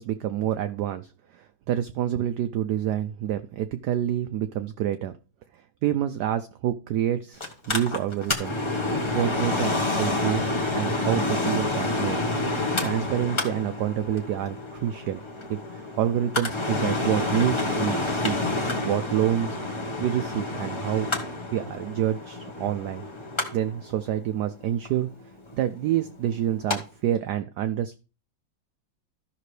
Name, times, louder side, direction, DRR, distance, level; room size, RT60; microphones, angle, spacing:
voice 1, 0.0-5.1 5.8-8.6 9.1-12.2 12.8-15.2 15.5-18.4 18.8-19.6 20.0-21.1 21.5-23.0 23.5-25.1 25.5-27.9, right 11 dB, 75° right, 10 dB, 0.9 m, -27 dB
Mechanical fan, 7.4-26.8 27.1-27.2, left 2 dB, 20° left, 0.9 m, -29 dB
13.5 x 6.0 x 3.2 m, 0.33 s
omnidirectional pair, 2.2 m